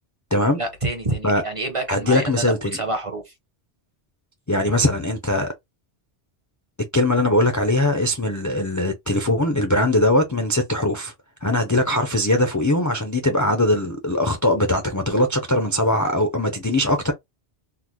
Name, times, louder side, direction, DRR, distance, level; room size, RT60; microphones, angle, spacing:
voice 1, 0.6-3.3, right 2 dB, 35° right, 0.7 m, -27 dB
voice 2, 1.9-2.8 4.5-5.5 6.9-11.1 11.4-17.1, left 1 dB, 25° left, 0.4 m, -21 dB
3.8 x 2.1 x 3.0 m
omnidirectional pair, 1.2 m